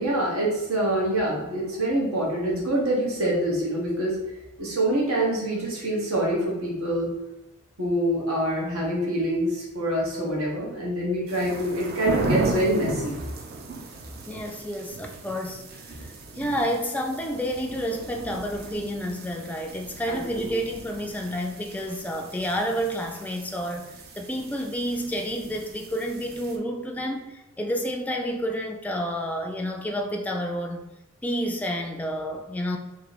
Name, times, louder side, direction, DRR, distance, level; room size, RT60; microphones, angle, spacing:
voice 1, 0.0-4.2 4.6-7.1 7.8-13.1 20.1-20.5, right 1 dB, 90° right, -3 dB, 1.3 m, -25 dB
sound 1, 11.3-26.6, right 3 dB, 50° right, 0.5 m, -36 dB
voice 2, 14.3-30.9 31.2-32.8, equal, 5° left, 2 dB, 0.3 m, -30 dB
3.1 x 3.0 x 4.0 m, 1.0 s
head